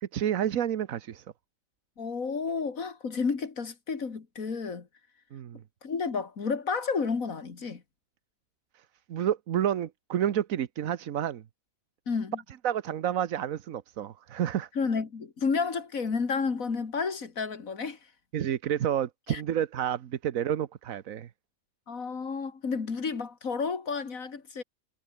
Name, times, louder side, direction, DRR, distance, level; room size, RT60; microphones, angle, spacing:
voice 1, 0.0-1.2 5.3-5.6 8.7-8.8 9.1-11.4 12.5-14.7 18.3-21.3, right 10 dB, 80° right, 1.3 m, -30 dB
voice 2, 2.0-4.9 5.8-7.8 12.1-12.4 14.8-18.0 19.3-19.4 21.9-24.6, left 5 dB, 80° left, 2.7 m, -31 dB
omnidirectional pair, 1.4 m